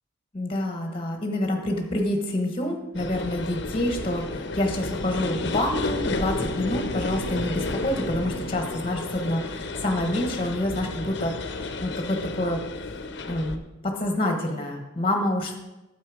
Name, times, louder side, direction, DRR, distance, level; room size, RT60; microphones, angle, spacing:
voice 1, 0.3-12.6 13.3-15.5, left 1 dB, 25° left, 4 dB, 1.1 m, -27 dB
sound 1, 2.9-13.6, left 2 dB, 60° left, 0.7 m, -32 dB
Bowed string instrument, 6.0-9.5, right 2 dB, 25° right, 0.6 m, -41 dB
9.4 x 7.6 x 4.9 m, 1.0 s
head